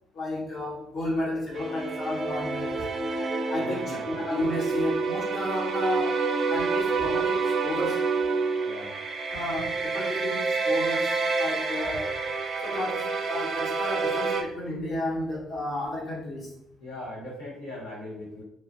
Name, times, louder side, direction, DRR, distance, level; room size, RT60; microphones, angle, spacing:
voice 1, 0.1-2.9 3.5-6.2 6.5-8.0 9.3-12.2 12.6-16.5, left 1 dB, 45° left, -4 dB, 1.1 m, -32 dB
sound 1, 1.5-14.4, right 4 dB, 45° right, 0.4 m, -28 dB
voice 2, 3.6-4.0 8.6-8.9 16.8-18.4, left 1 dB, 80° left, -8 dB, 0.9 m, -39 dB
3.1 x 2.4 x 2.6 m, 0.74 s
figure-of-eight pair, 45°, 0 cm